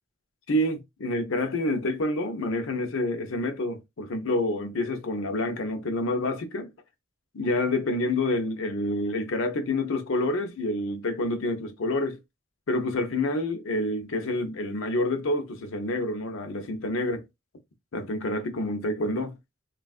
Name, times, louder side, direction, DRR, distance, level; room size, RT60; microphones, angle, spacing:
voice 1, 0.5-6.7 7.3-12.2 12.7-17.2 17.9-19.3, left 1 dB, 75° left, 0.6 m, -28 dB
3.3 x 2.3 x 2.3 m
head